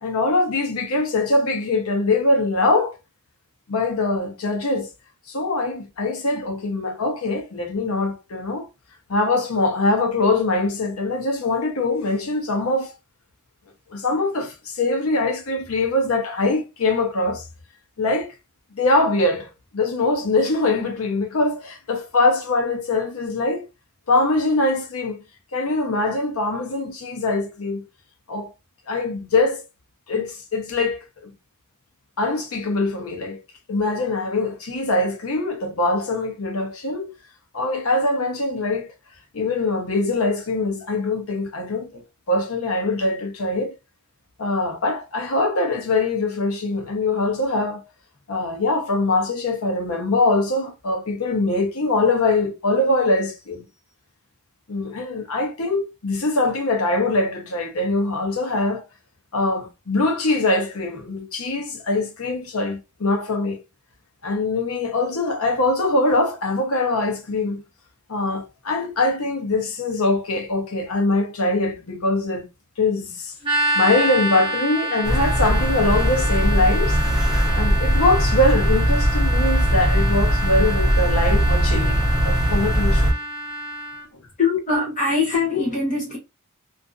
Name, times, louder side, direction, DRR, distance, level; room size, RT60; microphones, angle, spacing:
voice 1, 0.0-2.9 3.7-4.9 5.3-8.7 9.1-12.9 13.9-17.5 18.0-18.3 18.7-23.6 24.1-25.2 25.5-27.8 28.3-28.5 28.9-29.6 30.1-31.3 32.2-33.4 33.7-37.1 37.5-38.9 39.3-42.0 42.3-43.7 44.4-47.9 48.3-53.6 54.7-58.8 59.3-63.6 64.2-67.6 68.1-72.4 72.8-73.3 73.7-77.0 77.5-83.1, left 2 dB, 80° left, 0.8 m, -23 dB
sound 1, 73.4-84.0, equal, 25° right, 0.6 m, -27 dB
sound 2, 75.0-83.1, equal, ahead, 0.8 m, -20 dB
voice 2, 84.4-86.2, left 4 dB, 35° left, 0.8 m, -22 dB
2.6 x 2.5 x 2.3 m
head